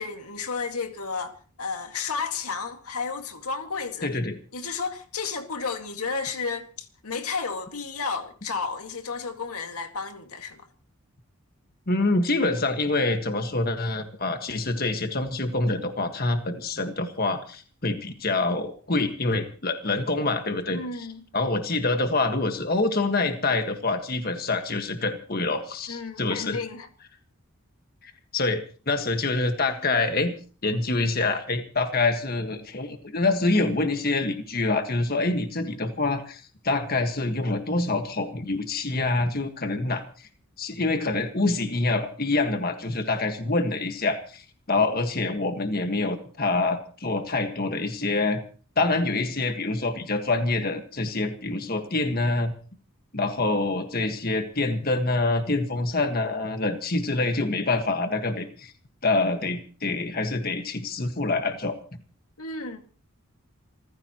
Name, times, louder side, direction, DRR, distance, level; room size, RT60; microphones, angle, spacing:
voice 1, 0.0-4.1 4.5-10.6 20.7-21.3 25.9-26.9 62.4-62.8, left 4 dB, 85° left, 2.1 m, -32 dB
voice 2, 4.0-4.4 11.9-21.1 21.3-26.6 28.0-30.3 30.6-40.3 40.6-44.4 44.7-48.4 48.8-52.5 53.1-58.7 59.0-61.7, left 2 dB, 40° left, 1.7 m, -26 dB
28.0 x 15.0 x 3.0 m
head